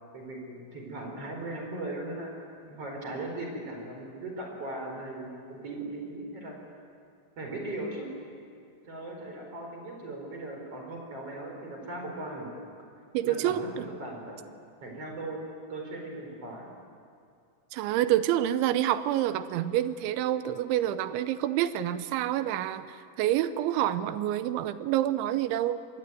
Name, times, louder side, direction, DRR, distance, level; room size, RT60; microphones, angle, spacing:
voice 1, 0.1-2.3 2.7-6.6 7.4-8.1 8.9-12.5 13.2-14.4 14.8-15.4 15.7-16.7, right 2 dB, 30° right, 1 dB, 5.2 m, -38 dB
voice 2, 13.1-13.6 17.7-26.0, right 12 dB, 80° right, 12 dB, 3.0 m, -28 dB
25.5 x 20.0 x 9.4 m, 2.3 s
omnidirectional pair, 5.8 m